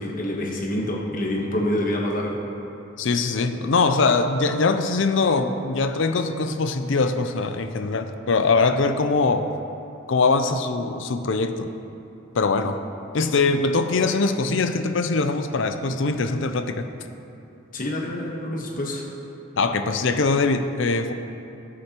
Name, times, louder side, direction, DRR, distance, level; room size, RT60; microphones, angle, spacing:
voice 1, 0.0-2.4 17.7-19.0, left 1 dB, 40° left, -1 dB, 1.2 m, -27 dB
voice 2, 3.0-9.5 10.1-11.7 12.3-12.8 13.1-16.9 19.6-21.1, left 3 dB, 65° left, 8 dB, 0.5 m, -22 dB
17.5 x 6.3 x 3.0 m, 2.9 s
head